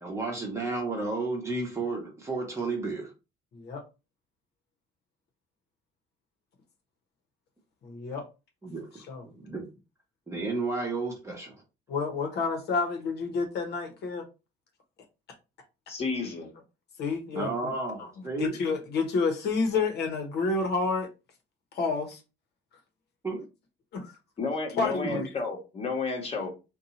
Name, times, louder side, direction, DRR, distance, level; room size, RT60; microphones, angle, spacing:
voice 1, 0.0-3.1 8.6-9.7 10.3-11.6 17.3-18.6 23.2-23.4 25.1-25.2, right 3 dB, 15° right, 1.1 m, -32 dB
voice 2, 7.8-8.2 9.1-9.2 11.9-14.3 17.0-17.5 18.3-21.1 21.7-22.2 23.9-24.2 24.8-25.3, left 4 dB, 60° left, 1.0 m, -29 dB
voice 3, 15.9-16.5 24.4-26.5, left 4 dB, 30° left, 1.2 m, -31 dB
2.6 x 2.3 x 4.0 m
cardioid pair, 115°, 19 cm